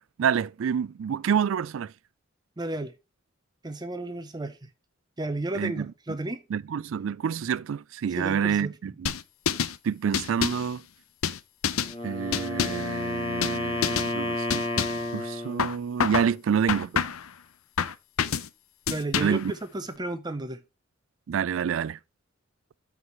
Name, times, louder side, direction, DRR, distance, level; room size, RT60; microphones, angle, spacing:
voice 1, 0.2-1.9 5.5-5.9 6.5-9.1 9.8-10.8 12.0-14.9 15.1-17.0 19.2-19.5 21.3-22.0, right 7 dB, 65° right, 0.3 m, -28 dB
voice 2, 2.6-2.9 3.6-4.7 5.2-6.4 8.2-8.7 18.9-20.6, right 2 dB, 20° right, 0.6 m, -33 dB
sound 1, 9.1-9.8 10.1-10.7 11.2-11.9 12.3-12.9 13.4-13.6 13.8-14.1 14.5-15.1 15.6-16.3 16.7-17.3 17.8-18.5 18.9-19.5, left 7 dB, 90° left, 0.7 m, -27 dB
Wind instrument woodwind instrument, 11.8-15.7, left 1 dB, 30° left, 3.1 m, -31 dB
13.5 x 4.8 x 3.0 m
head